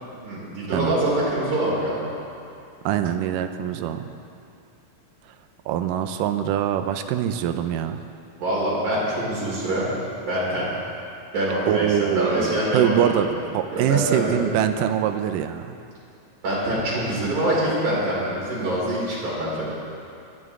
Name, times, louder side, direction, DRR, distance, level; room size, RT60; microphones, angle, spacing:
voice 1, 0.2-2.1 8.4-9.9 10.2-10.7 11.3-13.4 13.7-14.4 16.4-19.6, right 1 dB, 65° right, -8 dB, 5.9 m, -25 dB
voice 2, 2.9-4.0 5.7-8.0 11.6-15.8, right 10 dB, 90° right, 8 dB, 2.2 m, -24 dB
22.0 x 11.5 x 3.6 m, 2.5 s
omnidirectional pair, 3.8 m